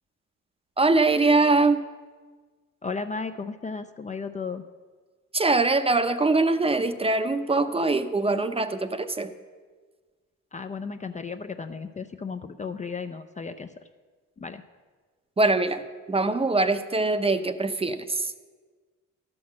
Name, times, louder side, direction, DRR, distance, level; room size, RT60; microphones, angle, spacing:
voice 1, 0.8-1.8 5.3-9.3 15.4-15.8 16.1-18.3, right 3 dB, 20° right, 10 dB, 0.7 m, -23 dB
voice 2, 2.8-4.6 10.5-13.7 14.4-14.6, left 4 dB, 25° left, 8 dB, 0.4 m, -34 dB
12.0 x 6.1 x 7.4 m, 1.4 s
cardioid pair, 90°, 30 cm